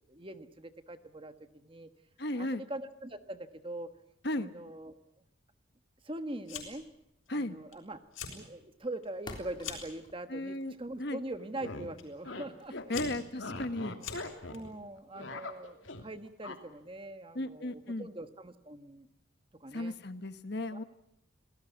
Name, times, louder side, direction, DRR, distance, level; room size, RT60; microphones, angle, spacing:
voice 1, 0.1-1.9 2.3-3.9 4.3-5.0 6.0-6.8 7.3-8.0 8.3-13.0 13.4-13.5 13.8-13.9 14.5-19.1 19.6-20.0 20.7-20.8, right 1 dB, 25° right, 10 dB, 1.3 m, -43 dB
voice 2, 2.2-2.6 4.2-4.5 7.3-7.6 10.3-11.2 12.7-14.0 17.3-18.1 19.7-20.8, left 1 dB, 55° left, 11 dB, 1.3 m, -35 dB
Fire, 6.4-6.9 7.3-7.7 8.0-8.4 8.8-10.0 10.8-11.1 12.0-12.1 12.6-14.6, left 7 dB, 90° left, 6.2 m, -43 dB
sound 1, 7.7-18.0, left 1 dB, 25° left, 3.6 m, -57 dB
sound 2, 11.4-11.9 12.2-12.5 12.7-14.7 15.0-16.0 16.4-16.6, left 2 dB, 70° left, 2.8 m, -41 dB
27.5 x 18.0 x 9.2 m, 0.81 s
head